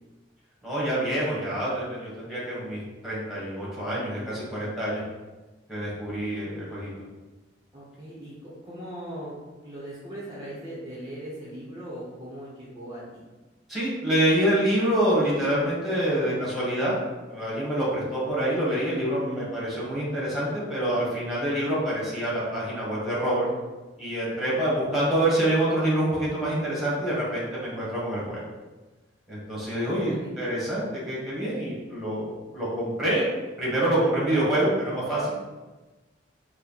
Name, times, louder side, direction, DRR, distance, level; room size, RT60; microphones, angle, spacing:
voice 1, 0.6-5.0 5.7-6.9 13.7-17.0 17.3-23.4 24.0-28.5 29.3-32.3 32.5-33.2 33.6-35.3, right 1 dB, ahead, -8 dB, 1.3 m, -26 dB
voice 2, 7.7-9.3 9.6-13.2 29.8-30.3, right 1 dB, 20° right, -8 dB, 0.8 m, -39 dB
4.3 x 2.2 x 4.0 m, 1.2 s
head